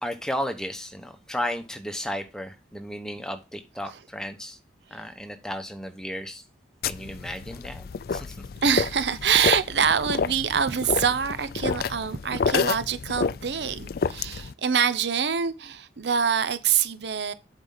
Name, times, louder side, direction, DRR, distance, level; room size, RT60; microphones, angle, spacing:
voice 1, 0.0-4.6 4.9-6.4 6.8-8.4, equal, 5° left, 1.1 m, -34 dB
sound 1, 6.8-14.5, left 5 dB, 55° left, 0.4 m, -29 dB
voice 2, 8.6-17.3, right 7 dB, 75° right, 0.6 m, -25 dB
8.0 x 5.4 x 3.9 m
head